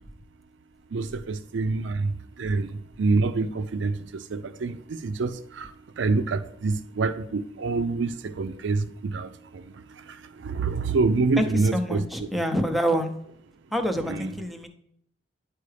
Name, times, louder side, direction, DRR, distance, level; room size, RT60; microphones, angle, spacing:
voice 1, 0.9-2.7 3.0-5.7 6.0-9.6 10.0-12.0 14.1-14.3, right 3 dB, 75° right, 0.4 m, -27 dB
voice 2, 11.4-13.1 13.7-14.7, equal, ahead, 0.7 m, -26 dB
9.6 x 4.6 x 3.3 m
head